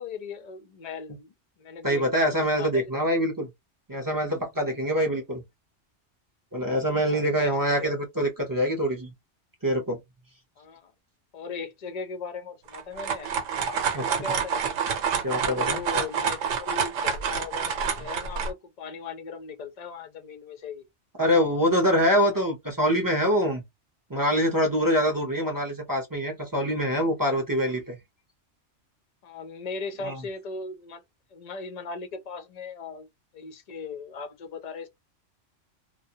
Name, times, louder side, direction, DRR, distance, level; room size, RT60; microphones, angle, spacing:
voice 1, 0.0-2.8 3.2-3.3 4.9-5.1 7.1-8.0 10.6-10.9 11.3-13.8 14.1-14.6 15.3-20.9 29.2-31.0 31.3-33.1 33.3-34.9, left 4 dB, 50° left, 0.5 m, -38 dB
voice 2, 1.8-3.5 3.9-5.4 6.5-9.1 9.6-10.0 13.9-14.1 15.2-15.8 21.2-23.6 24.1-28.0 30.0-30.2, equal, 25° right, 0.5 m, -25 dB
sound 1, 12.7-18.5, right 6 dB, 80° right, 1.0 m, -28 dB
2.2 x 2.1 x 2.7 m
omnidirectional pair, 1.3 m